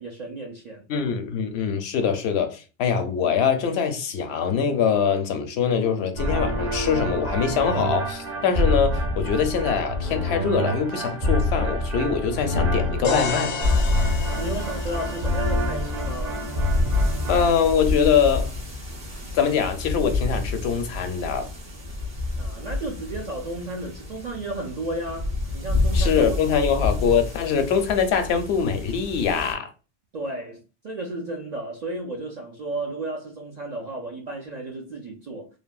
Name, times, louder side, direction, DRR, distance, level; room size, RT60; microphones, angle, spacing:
voice 1, 0.0-0.8 14.4-16.4 22.4-26.6 30.1-35.5, right 2 dB, 55° right, 0.4 m, -33 dB
voice 2, 0.9-13.6 17.1-18.5 19.3-21.5 25.9-29.7, left 6 dB, 70° left, 0.8 m, -23 dB
sound 1, 6.2-17.5, left 1 dB, 40° right, 0.8 m, -27 dB
sound 2, 13.0-16.9, left 4 dB, 50° left, 0.5 m, -32 dB
sound 3, 13.6-29.5, left 2 dB, 85° right, 1.4 m, -28 dB
3.3 x 2.0 x 2.3 m
omnidirectional pair, 1.2 m